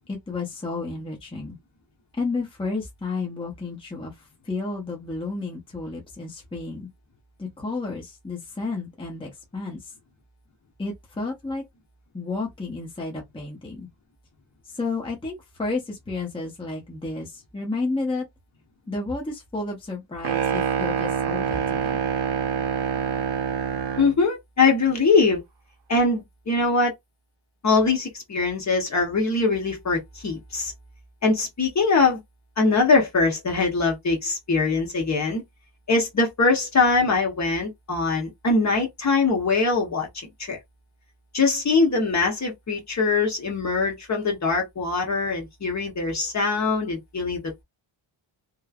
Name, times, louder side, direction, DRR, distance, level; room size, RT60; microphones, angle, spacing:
voice 1, 0.1-1.6 2.1-6.9 7.4-9.9 10.8-11.6 12.1-13.9 14.6-18.3 18.9-22.1, left 3 dB, 10° left, 0.7 m, -31 dB
sound 1, 20.2-24.2, right 7 dB, 55° right, 0.8 m, -26 dB
voice 2, 24.0-25.4 25.9-26.9 27.6-30.7 31.2-32.2 32.6-35.4 35.9-40.6 41.3-47.4, left 4 dB, 35° left, 0.9 m, -22 dB
3.1 x 2.1 x 2.3 m
wide cardioid pair, 150°, 47 cm